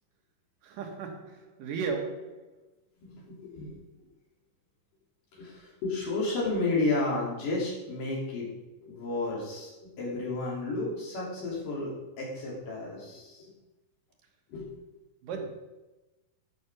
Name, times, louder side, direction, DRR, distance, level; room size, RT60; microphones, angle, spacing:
voice 1, 0.6-2.4 15.2-15.5, right 5 dB, 80° right, 3.0 m, -35 dB
voice 2, 3.0-3.7 5.3-8.5 8.8-13.5 14.5-14.7, left 2 dB, 75° left, 4.7 m, -32 dB
12.0 x 5.8 x 6.0 m
omnidirectional pair, 3.8 m